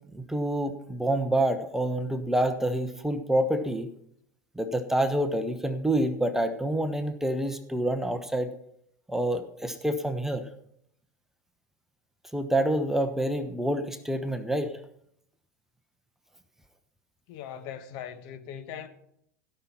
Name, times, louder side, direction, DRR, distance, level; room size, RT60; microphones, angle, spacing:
voice 1, 0.1-3.9 4.6-8.5 9.1-10.5 12.3-14.7, right 1 dB, 5° right, 1.0 m, -27 dB
voice 2, 17.3-18.9, left 9 dB, 50° left, 1.3 m, -40 dB
16.5 x 5.9 x 5.8 m
figure-of-eight pair, 80°, 9 cm